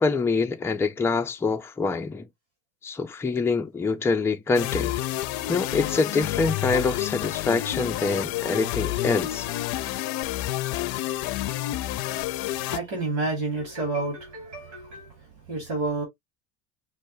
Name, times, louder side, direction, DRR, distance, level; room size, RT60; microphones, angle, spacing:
voice 1, 0.0-2.2 2.8-4.9 5.5-9.5, left 4 dB, 5° left, 0.4 m, -25 dB
sound 1, 4.5-12.8, left 15 dB, 55° left, 0.5 m, -29 dB
voice 2, 12.1-16.0, right 3 dB, 80° right, 2.6 m, -31 dB
5.6 x 2.1 x 3.2 m
hypercardioid pair, 80°, 42 cm